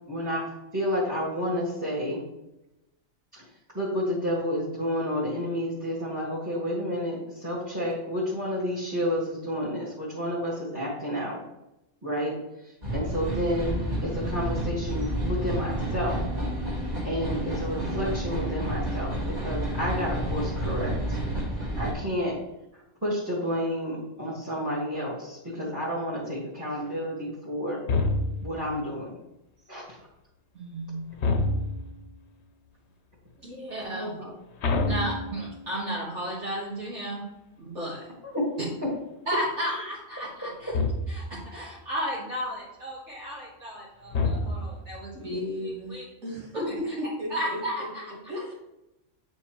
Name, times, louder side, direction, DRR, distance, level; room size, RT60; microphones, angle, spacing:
voice 1, 0.1-2.2 3.3-3.4 3.7-11.4 12.0-12.4 12.9-16.2 17.0-19.1 19.4-21.2 21.8-22.4 23.0-27.8 28.4-29.2 29.7-30.0 33.9-34.3 38.2-38.5 38.8-38.9, equal, 15° right, -8 dB, 1.5 m, -30 dB
sound 1, 12.8-21.9, right 1 dB, 30° right, 1.9 m, -30 dB
sound 2, 27.9-28.6 31.2-32.0 34.6-35.8 40.7-41.4 44.1-44.9, left 3 dB, 60° left, 1.0 m, -27 dB
voice 2, 30.5-31.0 33.4-34.2 34.9-37.2 37.6-38.1 39.3-40.7 41.1-46.0 46.7-46.9 47.3-48.3, equal, 60° right, -7 dB, 1.7 m, -34 dB
voice 3, 45.1-46.5 47.2-47.6 48.3-48.5, left 1 dB, 85° right, -2 dB, 2.1 m, -35 dB
8.5 x 4.5 x 3.0 m, 0.91 s
omnidirectional pair, 1.3 m